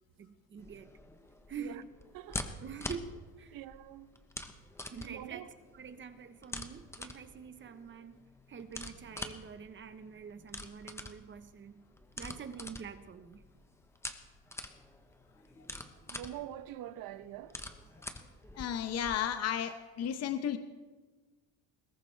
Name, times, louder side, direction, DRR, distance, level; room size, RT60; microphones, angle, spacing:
voice 1, 0.2-0.9 1.5-1.9 2.6-3.6 4.9-5.5 5.7-8.2 8.5-11.8 12.2-13.4, right 6 dB, 30° right, 1.0 m, -46 dB
sound 1, 0.6-19.2, left 1 dB, 5° left, 1.0 m, -46 dB
voice 2, 2.1-2.6 3.5-4.1 5.0-5.5 16.1-17.6, right 12 dB, 60° right, 0.9 m, -45 dB
voice 3, 18.5-20.6, left 9 dB, 40° left, 0.9 m, -34 dB
21.0 x 17.5 x 3.4 m
cardioid pair, 130°, 39 cm